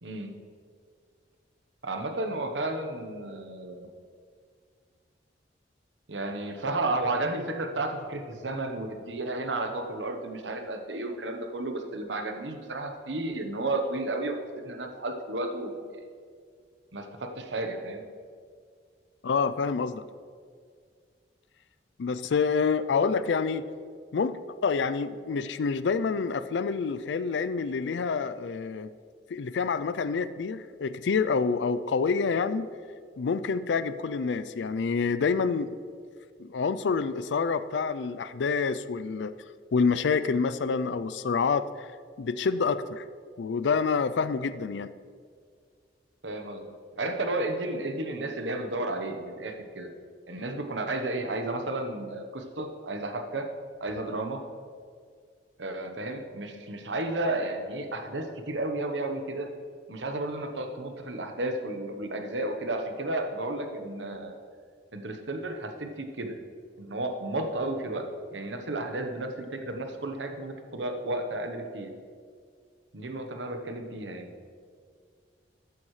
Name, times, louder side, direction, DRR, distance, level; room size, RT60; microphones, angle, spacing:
voice 1, 0.0-0.3 1.8-3.9 6.1-14.4 14.6-15.7 16.9-18.0 46.2-49.9 50.3-53.5 53.8-54.4 55.6-59.5 59.9-64.4 64.9-66.4 66.8-71.9 72.9-74.3, right 2 dB, 85° right, 5 dB, 1.1 m, -32 dB
voice 2, 19.2-20.0 22.0-23.7 24.1-28.9 29.3-32.7 33.2-35.7 36.4-39.3 39.7-41.9 42.2-43.0 43.4-44.9, left 5 dB, 75° left, 14 dB, 0.4 m, -27 dB
14.0 x 9.4 x 3.2 m, 2.1 s
head